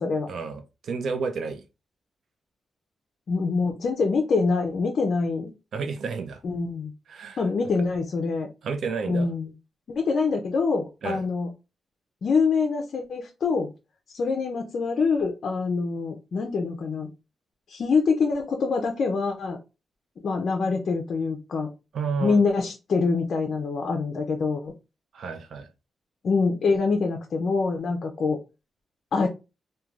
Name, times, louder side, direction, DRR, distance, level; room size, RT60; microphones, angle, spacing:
voice 1, 0.3-1.6 5.7-6.4 7.1-7.4 8.6-9.3 11.0-11.2 21.9-22.4 25.1-25.7, right 5 dB, 70° right, 0.4 m, -31 dB
voice 2, 3.3-5.5 6.4-6.9 7.4-8.5 9.1-9.5 9.9-11.5 12.2-13.7 14.1-17.1 17.7-19.6 20.2-21.7 22.2-24.7 26.2-28.4 29.1-29.3, left 4 dB, 60° left, 0.5 m, -25 dB
3.1 x 2.2 x 2.4 m
cardioid pair, 110°, 0 cm